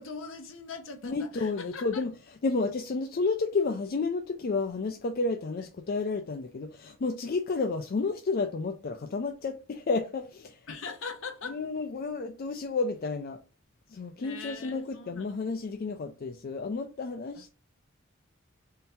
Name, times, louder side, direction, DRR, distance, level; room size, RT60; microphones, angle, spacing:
voice 1, 0.0-2.0 10.7-11.6 14.2-15.3 17.3-17.5, left 4 dB, 65° left, 0.8 m, -41 dB
voice 2, 1.0-10.7 11.5-13.4 13.9-17.5, left 3 dB, 45° left, 0.4 m, -31 dB
3.7 x 2.7 x 4.2 m
head